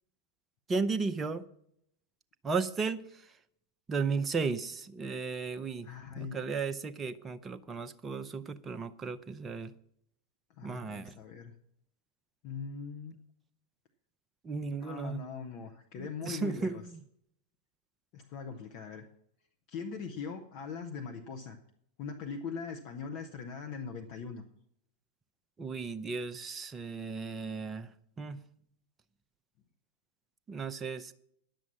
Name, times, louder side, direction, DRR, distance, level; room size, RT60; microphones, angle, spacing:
voice 1, 0.7-1.4 2.4-3.2 3.9-5.9 6.2-9.7 10.6-11.1 14.4-15.2 16.0-17.0 25.6-27.9 28.2-28.4 30.5-31.1, right 4 dB, 20° right, 0.6 m, -35 dB
voice 2, 5.8-6.4 10.6-11.5 12.4-13.2 14.8-16.9 18.1-19.1 19.7-21.6 22.0-24.4, left 5 dB, 45° left, 0.9 m, -41 dB
10.5 x 7.3 x 7.3 m
figure-of-eight pair, 90°, 0 cm